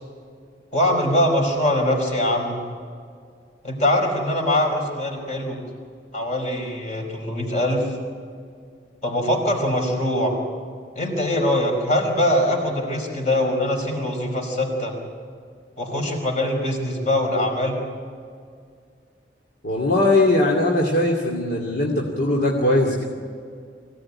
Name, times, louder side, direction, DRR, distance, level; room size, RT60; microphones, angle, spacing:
voice 1, 0.7-2.6 3.6-5.6 6.1-7.9 9.0-10.4 10.9-14.9 15.8-17.8, left 1 dB, 40° left, 2 dB, 5.0 m, -22 dB
voice 2, 19.6-23.0, left 2 dB, 65° left, -1 dB, 2.6 m, -20 dB
24.5 x 17.0 x 9.8 m, 2.2 s
head